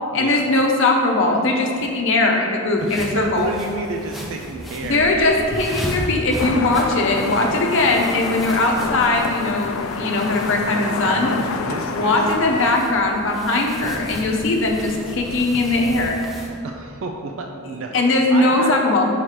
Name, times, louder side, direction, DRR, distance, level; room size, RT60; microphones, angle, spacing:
voice 1, 0.1-3.5 4.8-11.3 11.9-16.2 17.9-19.0, left 2 dB, 60° left, 1 dB, 0.7 m, -20 dB
sound 1, 2.8-16.5, equal, ahead, 0.6 m, -35 dB
voice 2, 2.8-5.0 11.0-12.1 16.6-18.7, right 3 dB, 65° right, 2 dB, 0.4 m, -30 dB
sound 2, 6.4-12.7, left 5 dB, 85° left, 0.4 m, -27 dB
5.7 x 3.2 x 5.7 m, 2.4 s
head